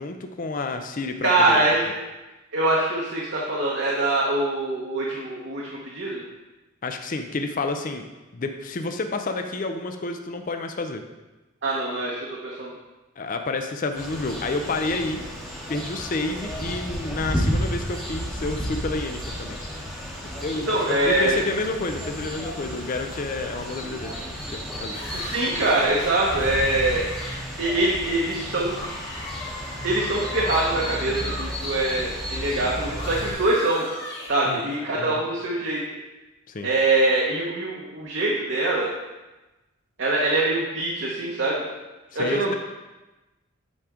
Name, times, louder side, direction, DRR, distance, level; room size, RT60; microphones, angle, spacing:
voice 1, 0.0-1.6 6.8-8.0 8.3-11.0 13.2-15.2 15.7-19.6 20.4-24.1 24.5-25.0 34.4-35.2 36.5-36.7 42.1-42.6, left 3 dB, 40° left, 6 dB, 0.5 m, -30 dB
voice 2, 1.2-1.9 2.5-6.2 11.6-12.7 20.7-21.4 25.1-27.0 27.6-28.7 29.8-33.9 34.3-35.8 36.6-38.9 40.0-41.7 42.1-42.6, right 2 dB, 55° right, -4 dB, 1.0 m, -23 dB
sound 1, 13.9-33.3, equal, ahead, 1.0 m, -33 dB
sound 2, 24.9-31.5 31.8-34.9, left 2 dB, 55° left, 2.1 m, -39 dB
8.5 x 4.9 x 3.6 m, 1.1 s
head